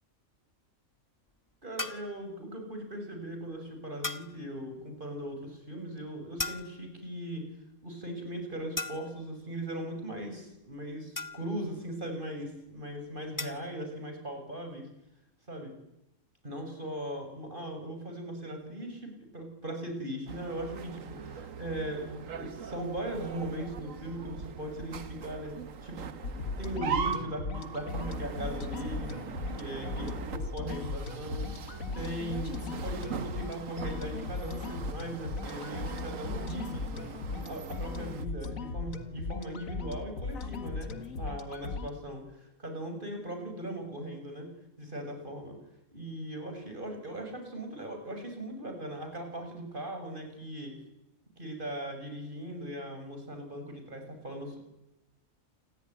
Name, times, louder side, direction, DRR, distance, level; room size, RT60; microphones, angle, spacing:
voice 1, 1.6-7.5 7.8-14.9 15.5-15.7 16.4-25.5 25.8-26.1 26.4-36.9 37.3-44.5 44.8-45.6 45.9-50.7 51.4-54.6, right 1 dB, 40° right, 5 dB, 7.4 m, -39 dB
sound 1, 1.8-2.2 4.0-4.4 6.4-7.0 8.8-9.3 11.2-11.7 13.4-13.7, left 2 dB, 15° left, 1.3 m, -37 dB
sound 2, 20.3-38.2, right 6 dB, 70° right, 1.6 m, -41 dB
sound 3, 26.2-41.9, left 4 dB, 80° left, 2.2 m, -38 dB
28.5 x 20.5 x 10.0 m, 0.88 s
omnidirectional pair, 1.4 m